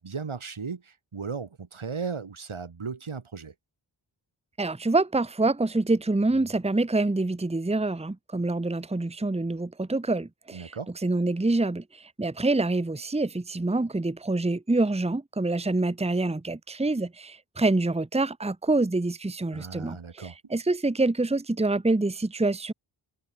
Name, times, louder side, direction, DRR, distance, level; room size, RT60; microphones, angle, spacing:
voice 1, 0.0-3.5 10.5-10.9 19.5-20.4, right 5 dB, 90° right, 6.0 m, -36 dB
voice 2, 4.6-10.7 11.0-22.7, right 2 dB, 15° right, 1.0 m, -26 dB
wide cardioid pair, 60°, 47 cm